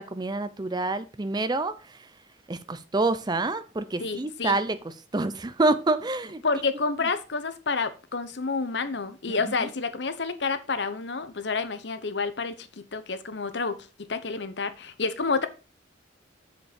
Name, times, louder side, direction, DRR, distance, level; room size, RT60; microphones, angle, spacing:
voice 1, 0.0-2.0 2.5-6.4 9.3-9.4, right 2 dB, 25° right, 0.5 m, -27 dB
voice 2, 4.0-4.6 6.4-15.5, left 4 dB, 65° left, 0.9 m, -29 dB
7.6 x 5.3 x 5.1 m
head